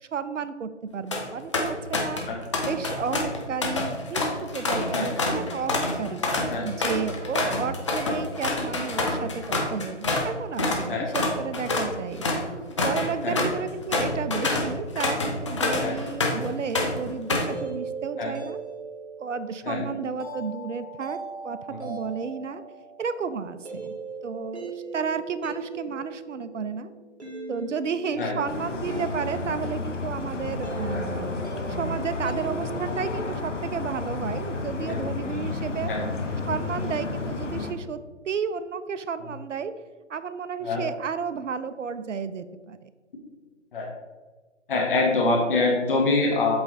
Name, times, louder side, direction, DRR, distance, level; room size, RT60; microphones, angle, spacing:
voice 1, 0.0-2.2 2.7-6.2 6.6-12.2 12.8-18.6 19.2-21.2 21.4-22.6 23.0-23.9 24.2-26.9 27.5-31.3 31.7-35.9 36.5-38.0 38.2-39.7 40.1-42.9, right 6 dB, 75° right, 13 dB, 0.5 m, -32 dB
sound 1, 0.9-1.2 1.5-2.3 2.5-10.3 10.6-10.8 11.1-16.5 16.7-17.6, left 2 dB, 25° left, 0.6 m, -27 dB
sound 2, 17.2-33.1, right 3 dB, 60° right, 1.7 m, -39 dB
sound 3, 28.5-37.7, left 3 dB, 80° left, 0.9 m, -31 dB
voice 2, 44.7-46.6, left 3 dB, 45° left, -1 dB, 1.0 m, -25 dB
7.8 x 3.3 x 4.0 m, 1.3 s
figure-of-eight pair, 145°, 37 cm